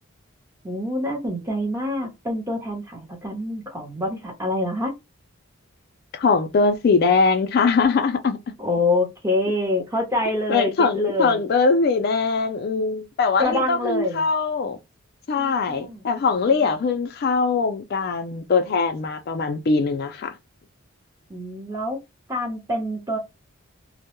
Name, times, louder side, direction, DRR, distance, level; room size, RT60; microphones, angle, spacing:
voice 1, 0.6-4.9 8.6-11.4 13.4-14.2 15.4-16.5 21.3-22.0 22.3-23.2, left 1 dB, 15° right, 0.7 m, -26 dB
voice 2, 6.1-8.4 10.5-14.8 15.3-20.4, left 4 dB, 45° left, 0.3 m, -21 dB
2.2 x 2.0 x 2.9 m
head